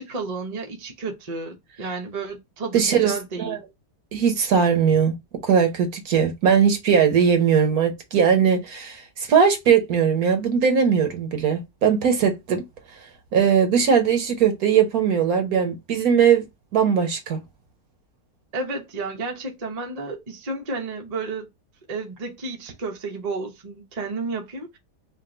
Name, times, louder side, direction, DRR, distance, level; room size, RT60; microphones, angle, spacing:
voice 1, 0.0-3.6 18.5-21.5 21.9-24.8, right 3 dB, 35° right, 0.7 m, -32 dB
voice 2, 2.7-3.6 4.1-5.2 5.4-12.6 13.3-16.4 16.7-17.4, right 7 dB, 60° right, 1.3 m, -20 dB
3.7 x 2.5 x 3.8 m
omnidirectional pair, 1.8 m